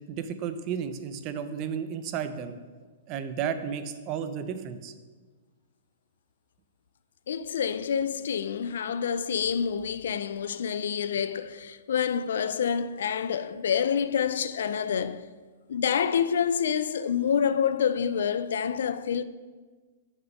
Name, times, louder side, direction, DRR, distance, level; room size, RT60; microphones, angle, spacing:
voice 1, 0.1-2.5 3.1-4.9, right 7 dB, 30° right, 0.5 m, -33 dB
voice 2, 7.3-15.3 15.7-19.2, left 7 dB, 80° left, 0.4 m, -27 dB
6.1 x 6.1 x 5.3 m
hypercardioid pair, 155°, 0 cm